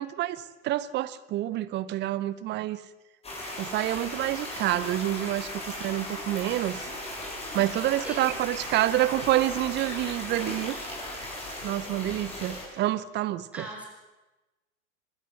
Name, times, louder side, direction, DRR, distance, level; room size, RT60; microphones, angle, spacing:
voice 1, 0.0-2.8 3.6-6.9 7.5-10.8 11.6-13.7, right 14 dB, 25° right, 16 dB, 0.9 m, -28 dB
sound 1, 3.2-12.6, left 1 dB, 15° left, 7.4 m, -37 dB
voice 2, 13.5-13.9, right 1 dB, 5° right, -1 dB, 6.5 m, -39 dB
25.0 x 13.5 x 7.7 m, 1.1 s
figure-of-eight pair, 100°, 40 cm